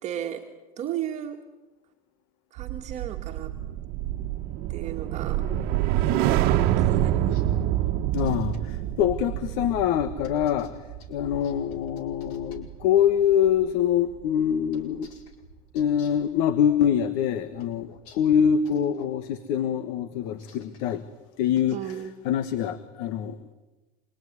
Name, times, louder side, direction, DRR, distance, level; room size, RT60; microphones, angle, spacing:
voice 1, 0.0-0.5 0.8-1.4 2.5-3.5 4.7-5.4 6.8-7.4 21.7-22.2, right 10 dB, 40° right, 2 dB, 2.0 m, -34 dB
sound 1, 2.6-13.0 13.3-13.6, right 12 dB, 60° right, 1.4 m, -27 dB
sound 2, 7.1-8.6 10.2-12.6 14.7-16.3 17.6-19.2 20.2-21.0 21.5-22.0, left 4 dB, 90° left, 5.0 m, -52 dB
voice 2, 8.1-10.7 11.1-15.1 15.7-21.0 21.4-21.8 22.2-23.5, left 9 dB, 70° left, 12 dB, 1.5 m, -24 dB
26.5 x 22.5 x 9.6 m, 1.2 s
supercardioid pair, 140°, 19 cm